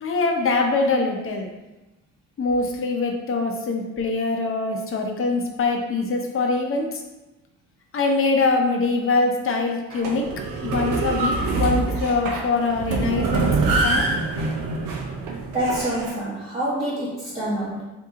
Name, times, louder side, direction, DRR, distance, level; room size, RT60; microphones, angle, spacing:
voice 1, 0.0-1.5 2.4-7.0 7.9-10.3 10.6-13.5 13.8-14.1, left 3 dB, 40° left, 2 dB, 0.7 m, -23 dB
sound 1, 9.9-16.1, right 3 dB, 75° right, 0.6 m, -25 dB
voice 2, 15.5-17.9, right 1 dB, 20° right, -10 dB, 0.9 m, -26 dB
2.9 x 2.6 x 3.6 m, 1.0 s
cardioid pair, 85°, 33 cm